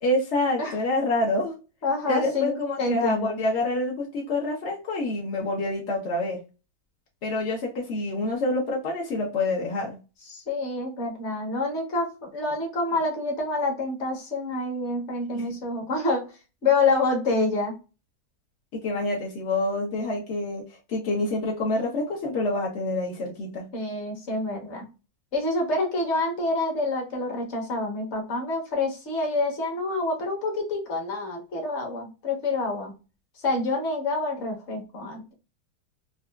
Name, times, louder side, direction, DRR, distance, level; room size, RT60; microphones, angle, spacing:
voice 1, 0.0-1.6 2.1-6.4 7.2-10.0 15.3-15.5 18.7-20.6 20.9-23.6, left 2 dB, 65° left, -2 dB, 0.6 m, -27 dB
voice 2, 1.8-3.4 10.3-16.3 16.6-17.8 23.7-24.9 25.3-32.9 33.4-35.3, left 2 dB, 45° left, 1 dB, 0.9 m, -27 dB
4.0 x 2.3 x 2.2 m, 0.30 s
omnidirectional pair, 2.3 m